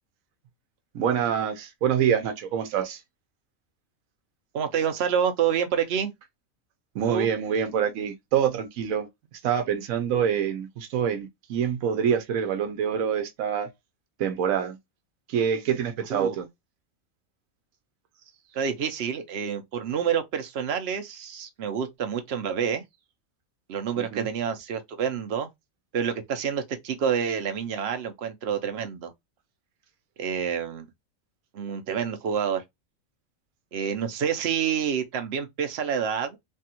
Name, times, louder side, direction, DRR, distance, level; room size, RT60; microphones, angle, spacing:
voice 1, 0.9-3.0 6.9-9.1 9.4-13.7 14.2-14.8 15.3-16.5 24.0-24.3, right 8 dB, 80° right, 1.1 m, -26 dB
voice 2, 4.5-6.1 7.1-7.3 16.1-16.3 18.5-22.8 23.7-25.5 25.9-29.1 30.2-30.9 31.5-32.6 33.7-36.4, right 7 dB, 60° right, 0.8 m, -28 dB
3.4 x 2.3 x 2.8 m
omnidirectional pair, 1.4 m